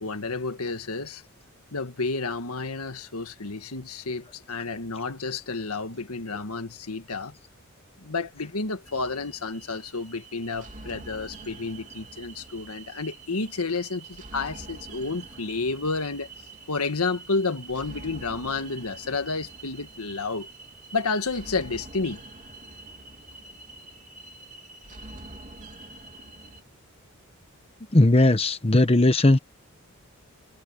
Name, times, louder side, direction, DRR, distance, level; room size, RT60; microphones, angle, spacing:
voice 1, 0.0-1.2 1.7-7.3 8.0-16.3 16.7-20.5 20.9-22.2, left 3 dB, 85° left, 1.7 m, -30 dB
sound 1, 8.8-26.6, right 3 dB, 35° right, 3.0 m, -45 dB
voice 2, 27.9-29.4, left 2 dB, 25° left, 1.0 m, -18 dB
head